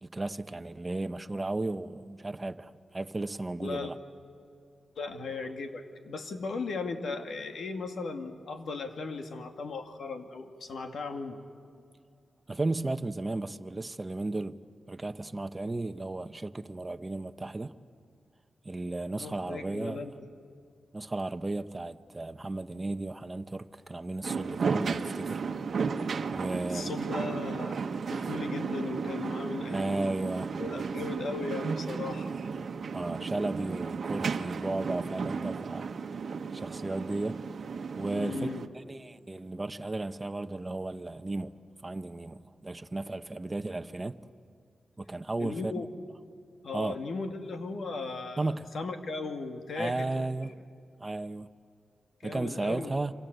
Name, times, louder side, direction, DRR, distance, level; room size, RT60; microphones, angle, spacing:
voice 1, 0.0-4.0 12.5-14.6 14.9-17.7 18.6-20.1 20.9-25.4 26.3-27.0 29.7-30.5 32.9-35.9 36.5-37.4 38.0-38.5 38.7-41.5 41.8-44.2 45.0-45.7 46.7-47.0 48.4-48.7 49.8-50.5 51.0-51.5 52.2-53.1, right 2 dB, 25° right, 1.0 m, -34 dB
voice 2, 3.6-3.9 5.0-11.4 19.1-20.3 26.7-27.8 28.1-29.9 30.2-30.3 30.6-32.4 38.1-38.7 45.4-45.9 46.6-50.2 52.2-52.9, left 3 dB, 75° left, 2.1 m, -37 dB
sound 1, 24.2-38.7, right 5 dB, 65° right, 1.2 m, -34 dB
28.0 x 26.5 x 8.0 m
cardioid pair, 75°, 0 cm